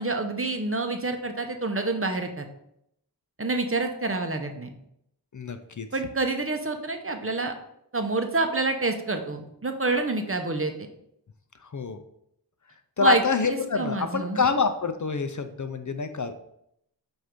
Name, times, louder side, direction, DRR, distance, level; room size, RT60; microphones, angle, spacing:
voice 1, 0.0-2.5 3.4-4.7 5.9-7.5 7.9-10.7 13.0-13.2 13.5-14.4, right 3 dB, 35° right, 6 dB, 0.7 m, -27 dB
voice 2, 5.3-5.9 11.7-12.0 13.0-16.4, left 4 dB, 45° left, 8 dB, 0.5 m, -26 dB
7.7 x 2.6 x 5.1 m, 0.75 s
wide cardioid pair, 60°, 41 cm